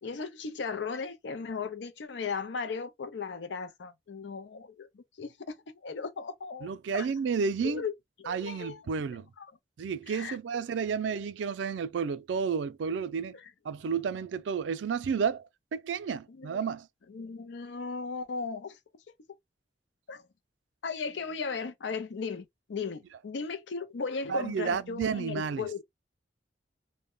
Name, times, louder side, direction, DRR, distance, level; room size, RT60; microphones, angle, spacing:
voice 1, 0.0-7.1 7.6-7.9 8.2-8.8 9.1-9.5 10.1-10.4 14.1-14.3 16.3-16.7 17.1-18.8 20.1-20.2 20.8-25.8, left 5 dB, 80° left, 0.5 m, -37 dB
voice 2, 6.6-7.8 8.3-9.3 9.8-13.4 13.6-16.9 24.3-25.7, right 6 dB, 85° right, 0.4 m, -31 dB
2.2 x 2.0 x 3.6 m
head